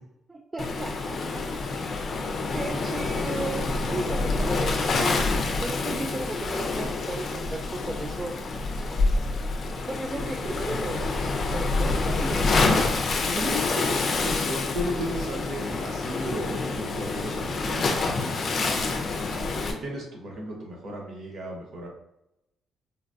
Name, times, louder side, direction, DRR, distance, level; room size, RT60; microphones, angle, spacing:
voice 1, 0.3-1.4 2.5-5.2 5.6-8.4 8.8-8.9 9.9-12.8 13.4-14.0, right 2 dB, 20° right, 2 dB, 0.3 m, -35 dB
Waves surf, 0.6-19.7, left 3 dB, 50° left, 0.5 m, -27 dB
voice 2, 3.9-4.3 13.2-13.6 14.2-21.9, equal, 60° right, -1 dB, 1.0 m, -35 dB
3.8 x 2.2 x 2.6 m, 0.83 s
cardioid pair, 90°, 0 cm